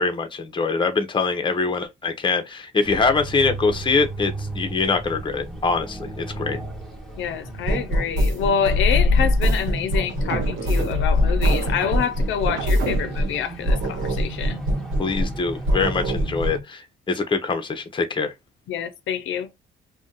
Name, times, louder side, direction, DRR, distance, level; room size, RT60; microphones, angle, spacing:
voice 1, 0.0-6.6 15.0-18.3, left 4 dB, 25° left, 0.7 m, -24 dB
sound 1, 2.8-16.6, right 1 dB, ahead, 1.2 m, -36 dB
voice 2, 7.2-14.7 18.7-19.5, left 8 dB, 75° left, 0.6 m, -27 dB
Pope-A-Dope, 7.7-13.4 13.7-15.4 15.7-16.6, left 1 dB, 80° right, 1.0 m, -22 dB
sound 2, 10.1-13.4, right 4 dB, 60° right, 0.7 m, -32 dB
2.5 x 2.2 x 3.7 m
cardioid pair, 90°, 20 cm